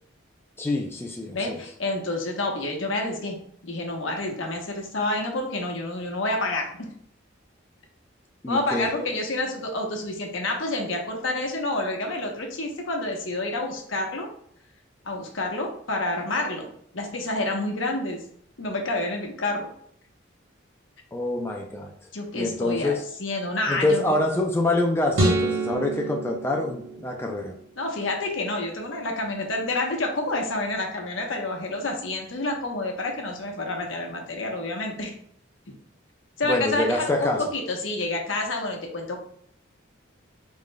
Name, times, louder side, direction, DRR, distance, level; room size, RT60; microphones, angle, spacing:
voice 1, 0.6-1.6 8.4-9.1 21.1-21.9 22.3-23.0 23.7-27.5 36.4-37.4, left 2 dB, 10° left, 1 dB, 0.4 m, -26 dB
voice 2, 1.3-3.4 3.6-6.9 8.5-14.3 15.0-16.7 16.9-18.2 18.6-19.7 22.1-24.2 27.8-35.1 36.4-39.2, left 2 dB, 80° left, 2 dB, 1.0 m, -28 dB
sound 1, 25.1-27.5, right 2 dB, 85° right, 1.1 m, -26 dB
5.2 x 3.6 x 2.2 m, 0.66 s
head